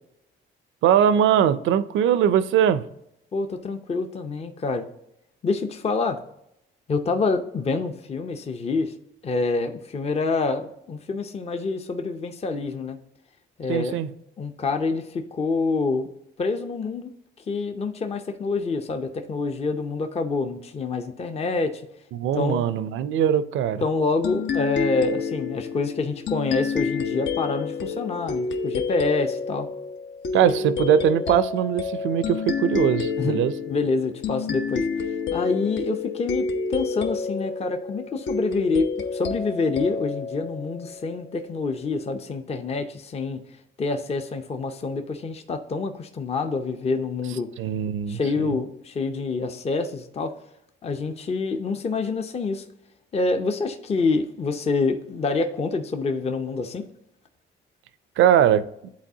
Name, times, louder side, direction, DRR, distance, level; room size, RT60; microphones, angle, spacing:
voice 1, 0.8-2.9 13.7-14.1 22.1-23.8 30.3-33.6 47.6-48.6 58.2-58.7, right 9 dB, 75° right, 0.5 m, -21 dB
voice 2, 3.3-4.9 5.4-6.2 6.9-8.9 9.2-13.0 13.6-14.0 14.4-16.1 16.4-17.1 17.5-21.9 22.3-22.6 23.8-29.7 33.2-34.9 35.3-43.4 43.8-47.5 48.1-50.3 50.8-52.7 53.1-56.8, left 3 dB, 30° left, 0.6 m, -27 dB
sound 1, 24.2-41.4, left 5 dB, 65° left, 0.8 m, -29 dB
10.5 x 4.1 x 2.7 m
cardioid pair, 90°, 20 cm